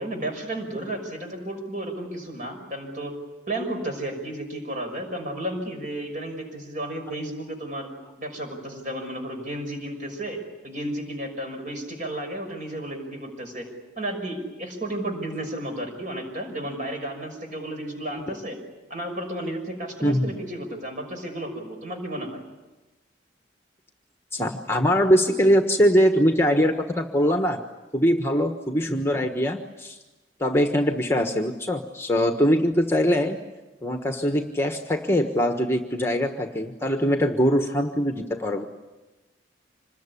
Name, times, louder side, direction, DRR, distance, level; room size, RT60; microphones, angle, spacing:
voice 1, 0.0-3.2 3.5-7.9 8.2-13.7 14.0-18.6 18.9-22.4, right 1 dB, 40° right, 4 dB, 6.2 m, -33 dB
voice 2, 20.0-20.3 24.3-27.6 27.9-30.0 30.4-33.4 33.8-38.6, equal, 15° left, 5 dB, 1.3 m, -22 dB
26.5 x 21.0 x 9.9 m, 1.1 s
head